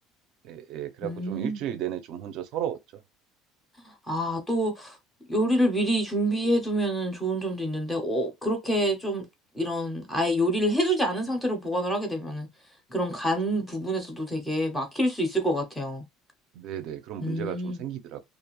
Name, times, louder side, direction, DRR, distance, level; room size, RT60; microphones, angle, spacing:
voice 1, 0.4-2.8 16.5-18.2, right 10 dB, 45° right, 0.4 m, -34 dB
voice 2, 1.0-1.6 3.8-5.0 5.3-9.2 9.5-12.5 12.9-16.0 17.2-17.8, equal, 10° left, 0.5 m, -27 dB
2.4 x 2.1 x 2.9 m
cardioid pair, 175°, 0 cm